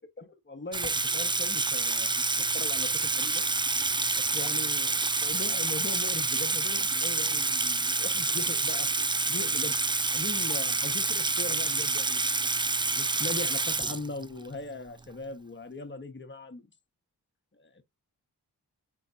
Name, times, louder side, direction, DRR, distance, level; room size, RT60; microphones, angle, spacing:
voice 1, 0.2-2.3 2.5-2.9 3.2-3.4 4.3-8.9 9.3-9.8 10.1-12.4 12.9-16.7 17.6-17.8, left 3 dB, 30° left, 1.1 m, -39 dB
Water tap faucet / Sink (filling or washing), 0.7-14.5, right 3 dB, 15° right, 0.3 m, -28 dB
5.6 x 3.8 x 2.4 m
cardioid pair, 40°, 39 cm